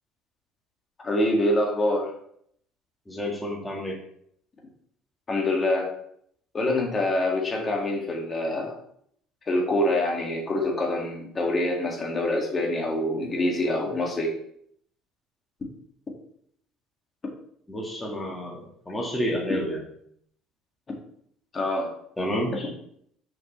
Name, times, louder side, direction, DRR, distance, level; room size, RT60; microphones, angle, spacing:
voice 1, 1.0-2.1 5.3-5.9 6.5-8.8 9.5-14.3 21.5-21.9 22.5-22.7, left 1 dB, 30° left, 0 dB, 1.9 m, -25 dB
voice 2, 3.1-4.0 17.7-19.8 22.2-22.5, equal, 10° left, -1 dB, 1.6 m, -30 dB
5.9 x 5.5 x 3.2 m, 0.68 s
supercardioid pair, 100°, 0 cm